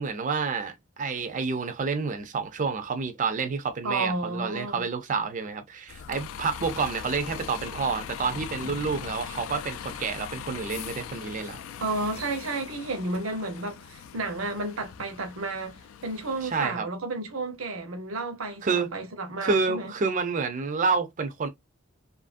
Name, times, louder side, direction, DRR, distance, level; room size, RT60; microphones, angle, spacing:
voice 1, 0.0-11.6 16.4-16.9 18.6-18.9 19.4-21.5, right 4 dB, 40° right, 0.4 m, -29 dB
voice 2, 3.8-4.8 11.8-19.9, right 2 dB, 80° right, 0.8 m, -32 dB
Bus, 5.9-16.7, left 8 dB, 70° left, 0.3 m, -40 dB
2.7 x 2.5 x 2.4 m
head